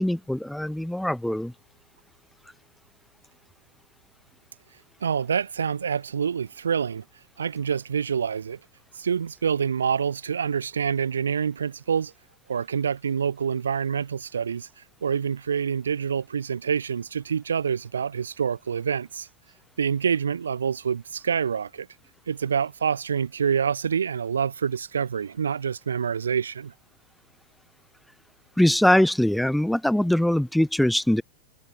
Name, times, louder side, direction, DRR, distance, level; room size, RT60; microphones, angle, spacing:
voice 1, 0.0-1.5 28.6-31.2, left 1 dB, ahead, 7.2 m, -22 dB
voice 2, 5.0-7.0 7.4-8.6 9.0-12.1 12.5-14.7 15.0-19.3 19.8-21.9 22.3-26.7, right 7 dB, 70° right, 3.9 m, -26 dB
figure-of-eight pair, 90°, 0 cm